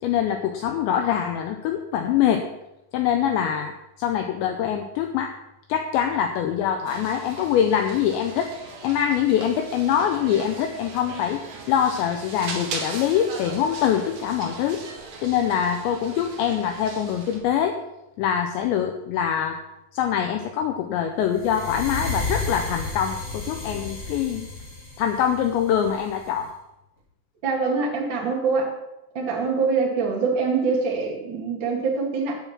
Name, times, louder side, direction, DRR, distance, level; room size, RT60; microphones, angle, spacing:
voice 1, 0.0-2.4 2.9-5.3 5.7-8.5 8.8-14.8 15.2-17.8 18.2-19.6 19.9-24.5 25.0-26.5, left 9 dB, 85° left, 5 dB, 2.5 m, -24 dB
sound 1, 6.8-17.4, right 4 dB, 65° right, 1.7 m, -39 dB
sound 2, 21.3-26.4, left 3 dB, 30° left, 3.3 m, -32 dB
voice 2, 27.4-28.7 29.1-32.4, right 4 dB, 85° right, -1 dB, 1.0 m, -24 dB
9.4 x 9.0 x 5.9 m, 0.90 s
omnidirectional pair, 6.0 m